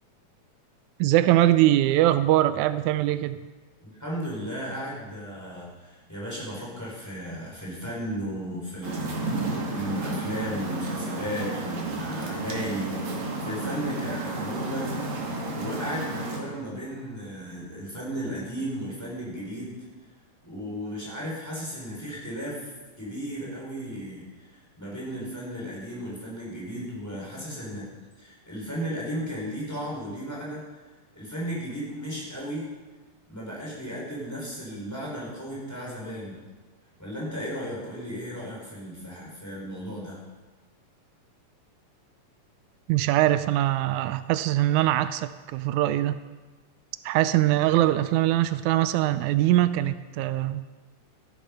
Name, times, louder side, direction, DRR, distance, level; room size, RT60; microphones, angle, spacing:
voice 1, 1.0-3.4 42.9-46.2 47.1-50.6, right 14 dB, 85° right, 13 dB, 2.0 m, -22 dB
voice 2, 3.8-9.4 9.7-14.9 15.3-19.7 20.4-22.7 23.0-27.9 28.2-30.6 31.1-32.7 33.3-36.4 37.0-40.2, equal, 5° left, -5 dB, 5.5 m, -35 dB
sound 1, 8.8-16.4, right 2 dB, 70° right, 3.6 m, -32 dB
14.0 x 12.0 x 5.6 m, 1.3 s
omnidirectional pair, 3.3 m